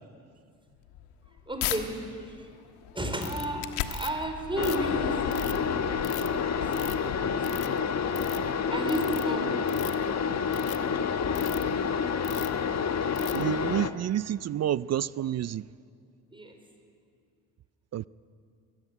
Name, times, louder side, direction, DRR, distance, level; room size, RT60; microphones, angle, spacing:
sound 1, 0.7-1.8 2.3-7.6, left 12 dB, 85° left, 1.4 m, -38 dB
voice 1, 1.5-1.9 2.2-2.5 2.9-7.3 8.7-10.2 16.3-16.6, right 1 dB, 10° right, 5 dB, 4.7 m, -34 dB
Ratchet pawl, 3.2-3.5 3.9-4.2 4.6-5.6 6.0-6.3 6.7-7.1 7.4-7.8 8.1-8.4 8.9-9.2 9.6-10.0 10.5-10.8 11.4-11.6 12.2-12.6 13.2-13.4, left 13 dB, 65° left, 1.1 m, -40 dB
sound 2, 4.6-13.9, left 6 dB, 40° left, 1.3 m, -28 dB
voice 2, 13.3-15.7 17.9-18.1, right 11 dB, 40° right, 19 dB, 0.4 m, -29 dB
21.5 x 15.0 x 9.9 m, 2.3 s
supercardioid pair, 65°, 40 cm